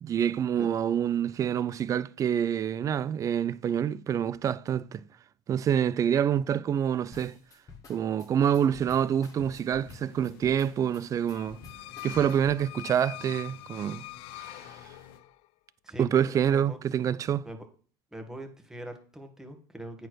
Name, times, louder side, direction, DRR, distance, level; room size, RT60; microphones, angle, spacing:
voice 1, 0.0-5.0 5.5-7.4 7.9-11.6 12.0-14.0 14.3-14.7 16.0-17.5, right 9 dB, 30° right, 0.5 m, -27 dB
sound 1, 7.1-12.6, left 5 dB, 30° left, 1.9 m, -50 dB
sound 2, 8.8-15.2, left 6 dB, 80° left, 1.5 m, -54 dB
sound 3, 11.3-15.5, left 19 dB, 55° left, 0.4 m, -44 dB
voice 2, 15.8-16.8 17.4-17.6 18.1-20.1, right 1 dB, 5° right, 1.6 m, -43 dB
8.6 x 4.6 x 6.2 m
supercardioid pair, 120°, 12 cm